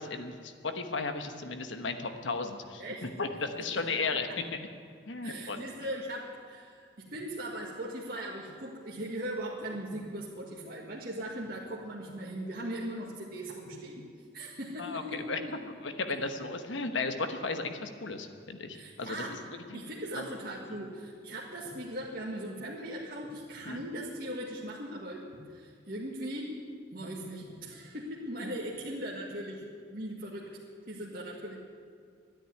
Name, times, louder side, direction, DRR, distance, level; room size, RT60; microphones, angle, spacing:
voice 1, 0.0-4.3 5.1-5.7 14.8-15.4 15.8-19.4 19.7-20.3 20.7-20.8 23.6-23.8, left 3 dB, 80° left, 7 dB, 1.2 m, -35 dB
voice 2, 5.2-14.1 14.3-15.2 18.7-19.3 19.7-26.5 26.9-30.5 30.9-31.6, right 1 dB, 50° right, -5 dB, 1.8 m, -39 dB
13.0 x 10.0 x 9.3 m, 2.2 s
head